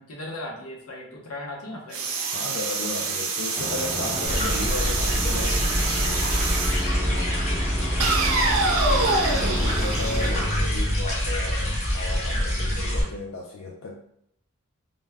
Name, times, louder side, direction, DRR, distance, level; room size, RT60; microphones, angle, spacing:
voice 1, 0.0-2.0 6.9-8.6 10.4-10.7, left 1 dB, 90° left, -1 dB, 0.7 m, -39 dB
sound 1, 1.9-6.9 8.0-10.9, right 3 dB, 75° right, 0.4 m, -27 dB
voice 2, 2.3-5.6 9.0-14.0, left 2 dB, 70° left, -2 dB, 0.3 m, -34 dB
sound 2, 3.5-10.5, equal, 10° right, 0.4 m, -34 dB
sound 3, 4.2-13.0, equal, 30° left, 0.6 m, -25 dB
2.1 x 2.1 x 3.3 m, 0.73 s
head